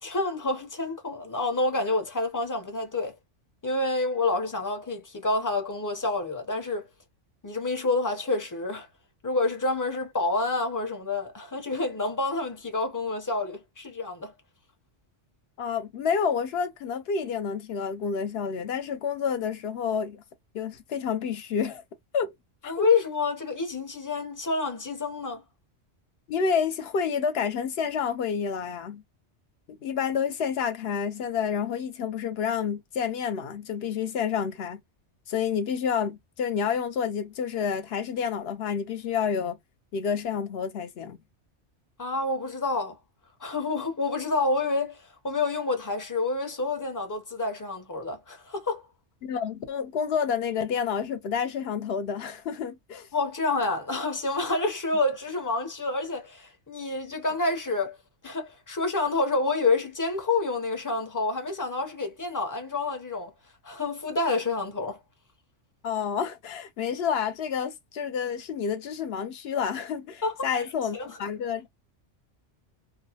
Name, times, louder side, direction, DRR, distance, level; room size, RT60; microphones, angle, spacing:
voice 1, 0.0-3.1 3.6-6.9 7.4-8.9 9.2-14.3 22.6-25.4 42.0-43.0 43.4-48.9 53.1-58.0 58.2-63.3 63.6-65.0 70.2-70.6 70.9-71.2, left 3 dB, 25° left, 0.5 m, -28 dB
voice 2, 15.6-20.2 20.5-21.8 22.1-22.3 22.6-22.9 26.3-29.0 29.7-34.8 35.3-39.6 39.9-41.2 49.2-53.1 65.8-71.7, left 7 dB, 65° left, 0.7 m, -29 dB
2.4 x 2.0 x 2.7 m
omnidirectional pair, 1.2 m